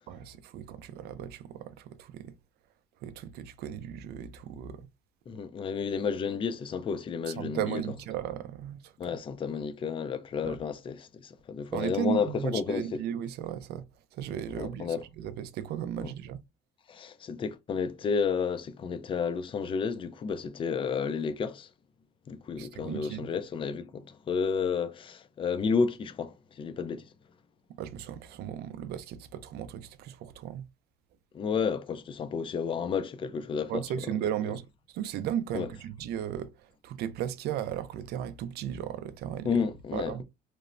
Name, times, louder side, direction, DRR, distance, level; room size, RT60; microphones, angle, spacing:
voice 1, 0.1-2.3 3.0-4.9 7.3-9.1 10.4-10.6 11.7-13.9 14.1-16.4 22.6-23.3 27.8-30.7 33.7-39.6 39.9-40.2, right 10 dB, 70° right, 0.4 m, -36 dB
voice 2, 5.3-7.8 9.0-13.0 14.5-15.0 16.0-16.1 16.9-21.7 22.3-27.1 31.3-33.8 35.5-35.7 39.4-40.2, left 6 dB, 30° left, 0.4 m, -31 dB
3.0 x 2.0 x 2.5 m
cardioid pair, 110°, 17 cm